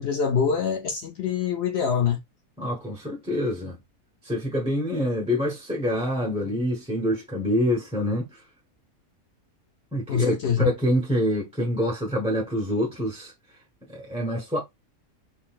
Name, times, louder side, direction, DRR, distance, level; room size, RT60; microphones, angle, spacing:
voice 1, 0.0-2.2 10.1-10.7, left 7 dB, 60° left, 0.7 m, -24 dB
voice 2, 2.6-3.7 4.2-8.4 9.9-13.3 13.9-14.6, equal, 5° right, 0.9 m, -26 dB
4.0 x 3.8 x 2.4 m
omnidirectional pair, 1.5 m